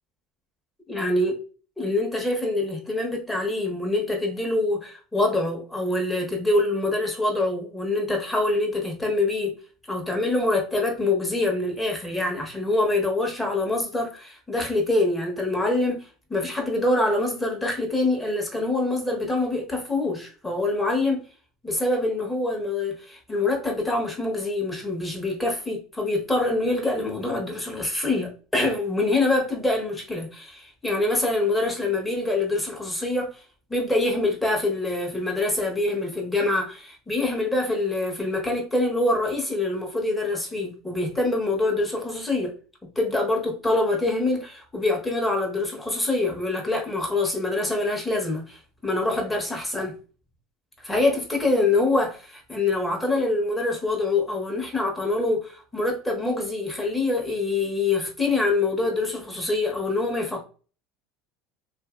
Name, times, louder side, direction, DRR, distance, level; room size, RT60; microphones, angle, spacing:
voice 1, 0.9-1.4 1.8-9.5 9.9-16.0 16.3-21.2 21.6-33.4 33.7-42.5 42.9-49.9 50.8-60.4, left 2 dB, 10° left, 1.0 m, -25 dB
2.7 x 2.6 x 2.4 m
supercardioid pair, 95°, 0 cm